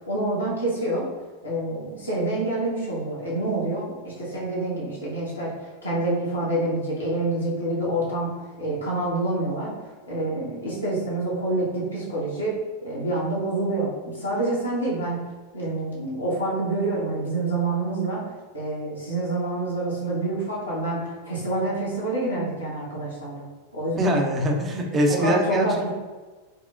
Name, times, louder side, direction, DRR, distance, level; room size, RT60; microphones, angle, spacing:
voice 1, 0.1-1.1 1.4-5.5 5.8-8.3 8.6-9.7 10.1-12.6 12.8-15.2 15.5-18.2 18.5-23.5 23.7-24.2 25.2-25.9, right 2 dB, 75° left, -6 dB, 1.0 m, -27 dB
voice 2, 24.0-25.9, equal, 25° right, 2 dB, 0.5 m, -23 dB
4.2 x 2.1 x 2.4 m, 1.3 s
figure-of-eight pair, 90°, 0 cm